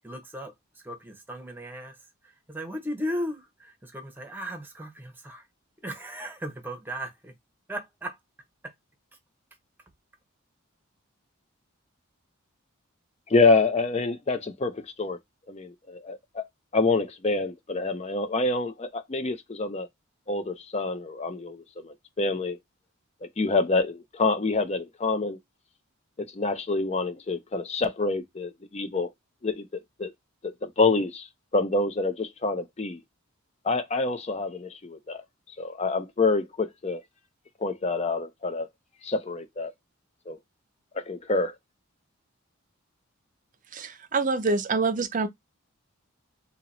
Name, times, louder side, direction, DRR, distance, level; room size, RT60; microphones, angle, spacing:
voice 1, 0.0-2.0 2.2-5.5 5.8-7.3 7.7-8.2 8.6-8.7, equal, 10° right, 0.8 m, -36 dB
voice 2, 13.3-15.2 15.5-16.4 16.7-19.9 20.3-22.6 23.2-25.4 26.2-29.1 29.4-29.7 30.0-30.1 30.4-31.3 31.5-33.0 33.6-35.2 35.6-37.0 37.6-38.7 39.0-39.7 40.3-40.4 40.9-41.5, left 3 dB, 30° left, 0.5 m, -27 dB
voice 3, 43.7-45.3, right 3 dB, 40° right, 0.6 m, -26 dB
2.8 x 2.8 x 4.0 m
head